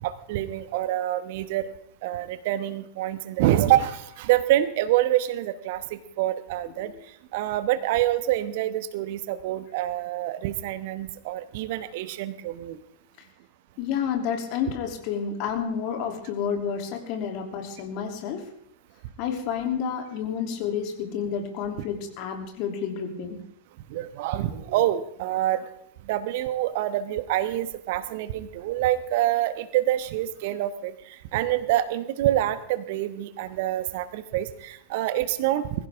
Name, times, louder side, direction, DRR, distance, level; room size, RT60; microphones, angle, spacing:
voice 1, 0.0-1.7 2.0-6.9 7.3-12.8 23.9-25.6 26.1-35.6, right 13 dB, 50° right, 13 dB, 1.1 m, -26 dB
voice 2, 13.8-18.4 19.2-23.4, left 7 dB, 45° left, 4 dB, 2.9 m, -30 dB
22.0 x 15.0 x 3.6 m, 0.70 s
figure-of-eight pair, 90°, 0 cm